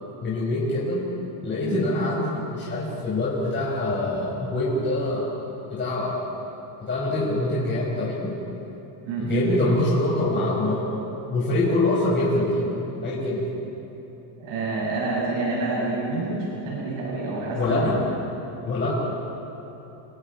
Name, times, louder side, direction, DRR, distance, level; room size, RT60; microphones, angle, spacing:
voice 1, 0.2-1.1 1.4-5.3 5.7-6.3 6.8-8.3 9.2-10.9 11.3-12.7 13.0-13.4 17.5-18.0 18.6-18.9, left 2 dB, 25° left, -7 dB, 5.2 m, -24 dB
voice 2, 9.0-9.4 14.4-18.0 18.9-19.0, right 3 dB, 75° right, -5 dB, 6.9 m, -28 dB
28.5 x 25.5 x 4.6 m, 3.0 s
cardioid pair, 135°, 47 cm